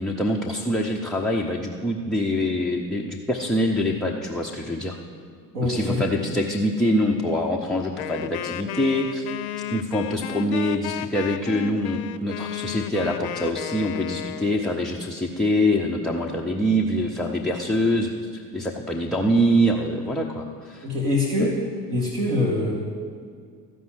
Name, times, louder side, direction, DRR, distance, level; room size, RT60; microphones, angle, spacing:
voice 1, 0.0-5.0 5.6-9.3 9.7-20.9 21.4-21.5, equal, ahead, -2 dB, 0.3 m, -24 dB
voice 2, 5.5-6.0 20.8-21.5 21.9-22.7, left 2 dB, 70° right, -4 dB, 2.1 m, -24 dB
Wind instrument woodwind instrument, 8.0-14.6, left 10 dB, 60° left, 0.6 m, -33 dB
14.0 x 5.4 x 7.7 m, 2.1 s
figure-of-eight pair, 65°, 49 cm